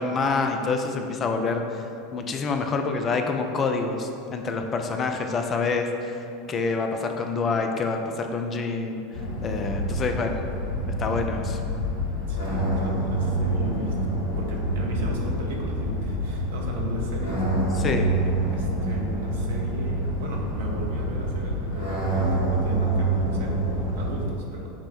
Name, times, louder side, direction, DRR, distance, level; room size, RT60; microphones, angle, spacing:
voice 1, 0.0-1.8 2.1-6.2 6.5-9.0 9.4-10.4 11.0-11.6 17.8-18.1, left 4 dB, 30° left, 4 dB, 0.3 m, -27 dB
sound 1, 9.1-24.2, right 1 dB, 75° left, 1.4 m, -27 dB
voice 2, 12.3-17.4 18.5-24.7, equal, 60° right, -1 dB, 0.7 m, -36 dB
5.9 x 2.1 x 4.2 m, 2.6 s
figure-of-eight pair, 80°, 0 cm